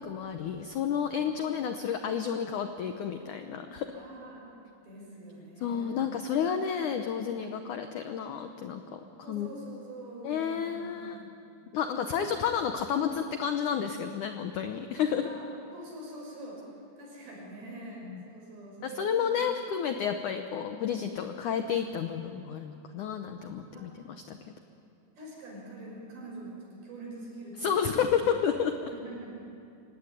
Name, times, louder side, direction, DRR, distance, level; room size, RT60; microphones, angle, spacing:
voice 1, 0.0-3.9 5.6-9.5 10.2-11.2 11.7-15.3 18.1-18.2 18.8-24.4 27.6-28.9, left 7 dB, 75° left, 7 dB, 1.8 m, -31 dB
voice 2, 3.9-4.4 4.8-6.1 9.2-11.5 11.9-12.3 15.2-15.5 15.7-16.6 17.0-19.3 23.7-23.9 25.2-28.1 28.9-29.3, right 1 dB, 60° right, -2 dB, 7.7 m, -45 dB
24.5 x 18.0 x 9.9 m, 2.6 s
omnidirectional pair, 4.9 m